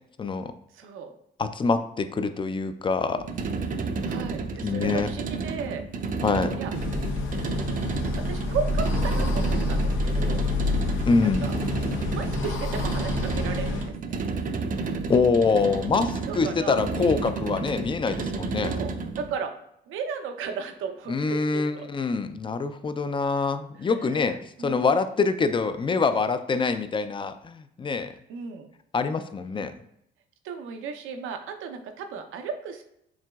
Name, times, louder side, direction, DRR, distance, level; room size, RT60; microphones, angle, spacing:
voice 1, 0.2-0.5 1.4-3.2 4.6-5.1 6.2-6.5 11.1-11.5 15.1-18.7 21.1-28.1 28.9-29.7, left 4 dB, 25° left, 10 dB, 0.4 m, -25 dB
voice 2, 0.7-1.2 4.0-5.8 6.6-6.7 8.2-10.4 11.2-11.6 12.1-14.2 16.3-16.8 18.6-19.5 19.9-21.9 23.9-24.8 28.1-28.7 30.4-32.9, right 6 dB, 85° right, 6 dB, 0.7 m, -35 dB
sound 1, 3.2-19.3, right 4 dB, 45° right, 0.5 m, -31 dB
sound 2, 6.7-13.9, left 2 dB, 80° left, 0.6 m, -28 dB
7.2 x 2.9 x 2.3 m, 0.76 s
cardioid pair, 90°, 20 cm